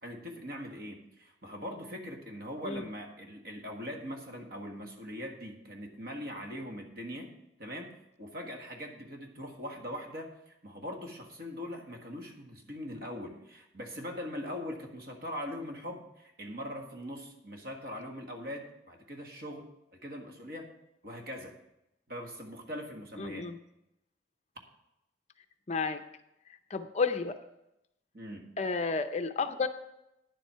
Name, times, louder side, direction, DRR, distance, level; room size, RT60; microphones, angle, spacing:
voice 1, 0.0-7.3 7.6-7.9 8.2-19.7 19.9-20.7 21.0-21.6 22.1-23.5 28.1-28.5, equal, 50° right, 3 dB, 1.6 m, -41 dB
voice 2, 23.2-23.6 25.7-26.0 26.5-27.4 28.6-29.7, left 4 dB, 35° left, 9 dB, 0.5 m, -32 dB
9.9 x 7.5 x 5.6 m, 0.87 s
head